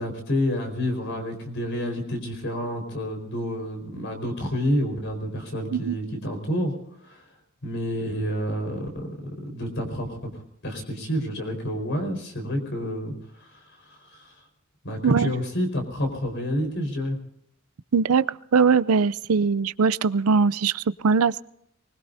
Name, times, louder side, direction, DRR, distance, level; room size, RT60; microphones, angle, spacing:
voice 1, 0.0-6.7 7.0-7.2 7.6-9.1 9.5-14.4 14.8-17.2, equal, 55° left, 4 dB, 4.6 m, -29 dB
voice 2, 17.9-18.3 18.5-21.4, right 5 dB, 90° right, 18 dB, 0.5 m, -21 dB
24.0 x 21.0 x 2.7 m, 0.71 s
head